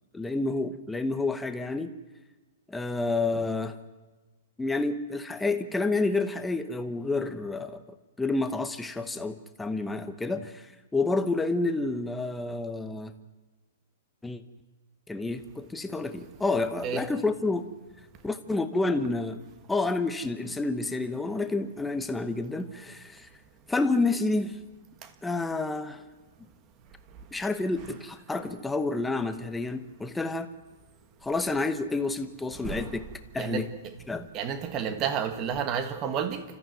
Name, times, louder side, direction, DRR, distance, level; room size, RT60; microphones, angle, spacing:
voice 1, 0.1-1.9 2.7-3.8 4.6-7.8 8.2-10.7 10.9-13.1 14.2-14.4 15.1-17.7 18.2-19.4 19.7-23.3 23.7-24.6 25.2-26.0 27.3-30.5 31.2-33.0 33.3-33.7 34.1-34.3, left 3 dB, 5° left, 1.0 m, -29 dB
voice 2, 32.6-33.0 33.3-33.9 34.3-36.4, right 7 dB, 20° right, 1.5 m, -31 dB
30.0 x 14.0 x 9.3 m
hypercardioid pair, 175°, 0 cm